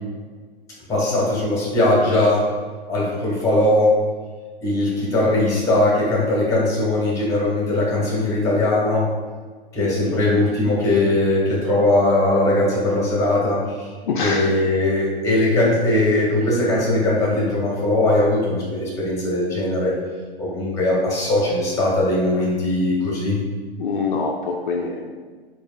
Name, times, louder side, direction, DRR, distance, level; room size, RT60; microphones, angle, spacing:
voice 1, 0.9-2.4 2.9-3.9 4.6-9.1 9.7-13.9 14.2-19.9 20.4-23.4, left 1 dB, 10° left, -5 dB, 1.4 m, -20 dB
voice 2, 14.0-14.4 23.8-25.2, left 4 dB, 55° left, -1 dB, 0.5 m, -24 dB
6.7 x 2.6 x 2.4 m, 1.4 s
figure-of-eight pair, 110°, 30 cm